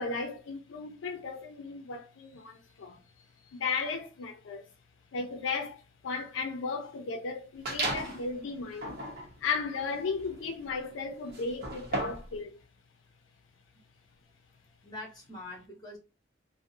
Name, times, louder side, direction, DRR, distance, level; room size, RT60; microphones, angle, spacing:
voice 1, 0.0-3.0 3.5-4.7 5.1-9.0 9.4-12.6, left 4 dB, 75° left, 0.4 m, -35 dB
voice 2, 3.2-3.6 8.0-8.1 14.8-16.0, left 2 dB, 20° left, 1.0 m, -45 dB
sound 1, 7.6-8.2 8.7-12.3, right 2 dB, 55° right, 0.8 m, -36 dB
2.5 x 2.0 x 2.5 m
head